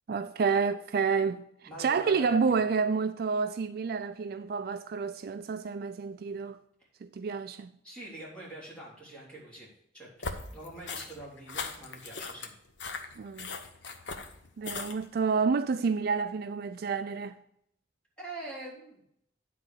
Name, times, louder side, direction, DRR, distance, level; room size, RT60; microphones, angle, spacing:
voice 1, 0.1-1.4 1.8-6.6 7.0-7.7 13.2-13.5 14.6-17.4, right 5 dB, 55° right, 0.4 m, -29 dB
voice 2, 1.6-2.6 7.8-12.5 18.2-19.1, right 2 dB, 5° left, 3.5 m, -45 dB
sound 1, 10.2-15.2, left 4 dB, 70° left, 0.9 m, -39 dB
10.0 x 4.2 x 6.4 m
head